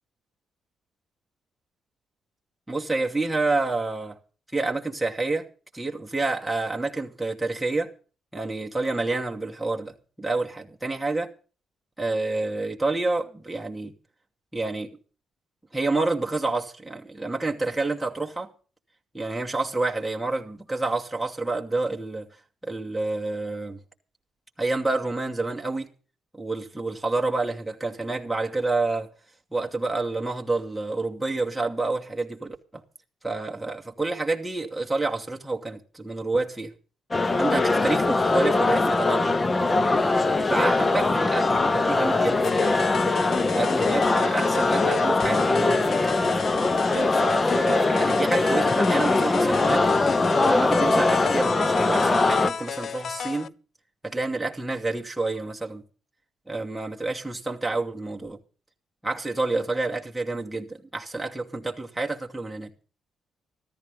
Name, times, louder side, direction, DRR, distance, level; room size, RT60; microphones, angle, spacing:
voice 1, 2.7-4.2 4.5-5.5 5.7-7.9 8.3-11.3 12.0-13.9 14.5-14.9 15.7-18.5 19.1-22.3 22.6-23.8 24.6-25.9 26.3-29.1 29.5-32.6 33.2-36.7 37.4-39.4 40.3-42.5 43.2-45.9 46.9-50.0 50.4-53.5 54.0-55.8 56.5-58.4 59.0-62.7, right 3 dB, 5° right, 2.5 m, -28 dB
sound 1, 37.1-52.5, left 3 dB, 25° left, 0.9 m, -22 dB
The Way We Roll, 42.4-53.5, left 7 dB, 55° left, 0.6 m, -34 dB
14.5 x 14.0 x 5.4 m
cardioid pair, 90°, 0 cm